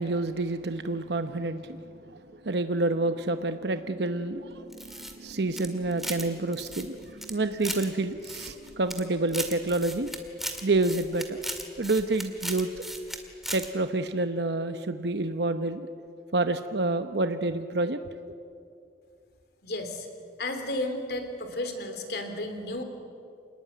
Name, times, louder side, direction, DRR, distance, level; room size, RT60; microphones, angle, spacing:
voice 1, 0.0-1.8 2.1-10.1 10.6-11.4 11.8-12.7 13.5-15.9 16.3-18.0, right 2 dB, 75° right, 9 dB, 0.9 m, -28 dB
sound 1, 4.7-6.3 6.5-7.9 8.2-9.0 9.3-13.2 13.4-13.7, right 1 dB, ahead, 2.1 m, -36 dB
voice 2, 19.6-20.1 20.4-22.8, left 1 dB, 65° left, 7 dB, 3.2 m, -33 dB
27.5 x 20.0 x 9.3 m, 2.5 s
head